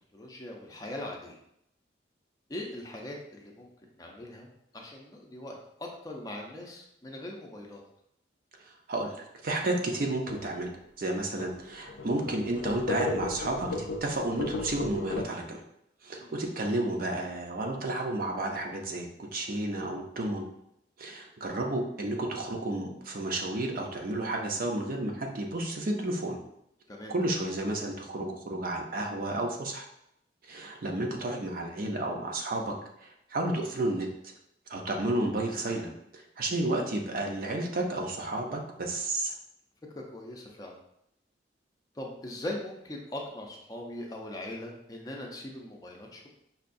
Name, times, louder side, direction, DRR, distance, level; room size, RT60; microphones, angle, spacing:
voice 1, 0.1-1.4 2.5-4.5 4.7-7.8 16.2-16.3 26.9-27.1 39.9-40.8 41.9-46.3, left 1 dB, 20° left, -1 dB, 0.5 m, -40 dB
voice 2, 9.4-10.7 11.0-15.6 16.0-19.1 19.3-20.5 21.0-26.4 27.1-29.8 30.4-32.7 33.0-34.1 34.7-39.3, right 1 dB, 50° right, 1 dB, 0.5 m, -31 dB
sound 1, 10.3-10.5 11.0-11.1 11.4-11.5 11.9-15.2, left 2 dB, 80° left, 0.4 m, -34 dB
5.5 x 2.3 x 2.5 m, 0.77 s
head